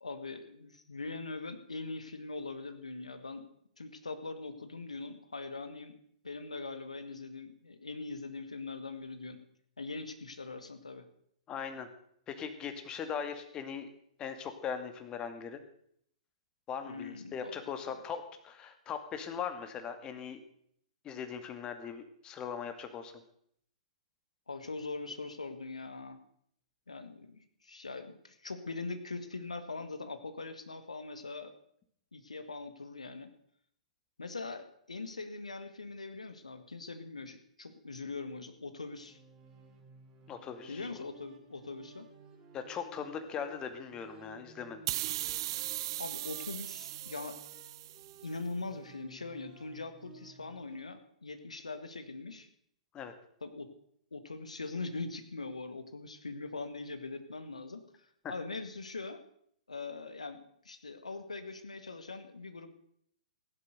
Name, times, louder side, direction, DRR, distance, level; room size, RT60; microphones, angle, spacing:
voice 1, 0.0-3.4 3.8-5.9 6.2-9.4 9.8-11.1 16.9-17.7 24.5-26.2 26.9-31.5 32.1-33.3 34.2-39.2 40.7-42.1 46.0-47.4 48.2-52.5 53.4-53.7 54.1-59.2 59.7-62.7, left 3 dB, 75° left, 9 dB, 1.8 m, -42 dB
voice 2, 11.5-11.9 12.3-13.9 14.2-15.6 16.7-20.4 21.0-23.2 40.3-40.8 42.5-44.8 52.9-53.1, left 7 dB, 20° left, 8 dB, 2.1 m, -40 dB
sound 1, 39.0-50.8, right 5 dB, 20° right, 3.3 m, -57 dB
sound 2, 44.9-48.3, right 15 dB, 45° right, 0.6 m, -38 dB
16.0 x 11.5 x 6.6 m, 0.67 s
figure-of-eight pair, 110°, 4 cm